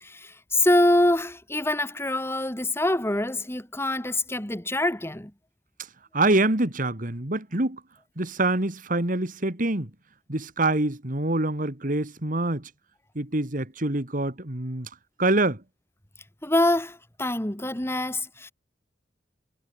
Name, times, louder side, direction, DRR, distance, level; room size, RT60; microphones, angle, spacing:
voice 1, 0.0-5.3 16.4-18.5, left 1 dB, 15° left, 2.4 m, -25 dB
voice 2, 6.1-7.8 8.2-9.9 10.3-12.7 13.1-14.9 15.2-15.6, right 2 dB, 50° right, 2.6 m, -25 dB
head